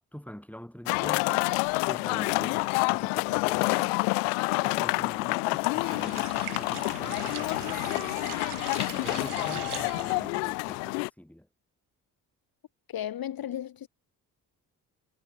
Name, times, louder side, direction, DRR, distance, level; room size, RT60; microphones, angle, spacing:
voice 1, 0.0-1.5 1.9-4.0 4.6-8.5 9.0-11.5, equal, 5° left, 6.1 m, -44 dB
sound 1, 0.9-11.1, left 38 dB, 80° left, 0.9 m, -28 dB
sound 2, 5.7-10.3, right 15 dB, 90° right, 1.1 m, -41 dB
voice 2, 12.9-13.9, left 11 dB, 50° left, 1.5 m, -34 dB
hypercardioid pair, 40°, 44 cm